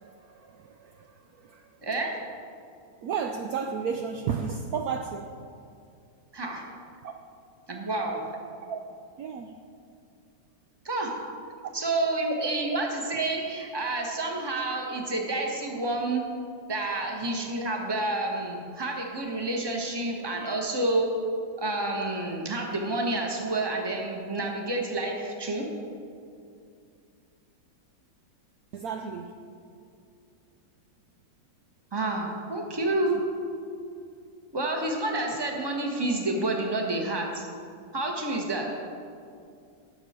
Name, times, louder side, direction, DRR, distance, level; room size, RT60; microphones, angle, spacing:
voice 1, 0.0-1.8 3.0-5.3 7.0-7.2 8.7-9.6 11.6-11.7 28.7-29.4, right 6 dB, 75° right, 0.8 m, -34 dB
voice 2, 1.8-2.2 6.3-6.6 7.7-8.3 10.8-11.1 11.7-16.2 16.7-21.1 21.6-25.7 31.9-33.2 34.5-37.4 37.9-38.7, right 2 dB, 15° right, 1.1 m, -29 dB
18.5 x 6.8 x 4.4 m
omnidirectional pair, 2.1 m